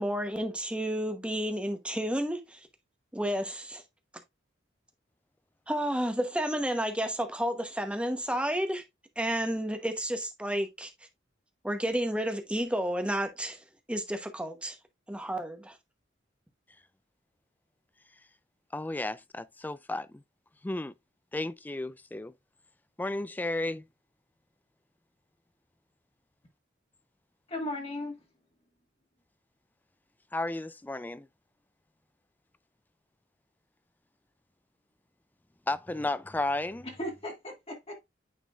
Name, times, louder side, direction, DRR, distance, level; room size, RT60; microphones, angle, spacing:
voice 1, 0.0-2.6 3.1-3.8 5.7-8.8 9.2-10.9 11.6-13.6 13.9-14.8 15.1-15.7, equal, 5° right, 1.0 m, -31 dB
voice 2, 18.7-20.2 20.6-20.9 21.3-22.3 23.0-23.8 30.3-31.3 35.7-36.9, left 2 dB, 10° left, 0.3 m, -33 dB
voice 3, 27.5-28.2 36.8-38.0, left 1 dB, 30° left, 1.8 m, -36 dB
9.3 x 4.2 x 2.4 m
head